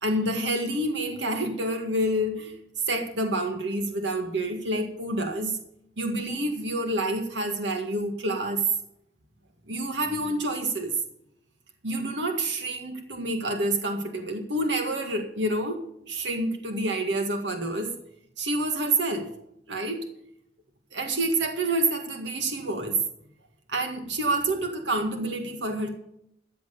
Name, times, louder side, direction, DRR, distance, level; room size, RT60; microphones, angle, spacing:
voice 1, 0.0-2.5 2.9-5.6 6.0-8.6 9.7-10.9 11.8-15.8 16.1-17.9 18.4-19.3 19.7-20.0 20.9-23.0 23.7-25.9, right 1 dB, 85° right, 5 dB, 1.9 m, -28 dB
14.0 x 7.7 x 6.9 m, 0.74 s
head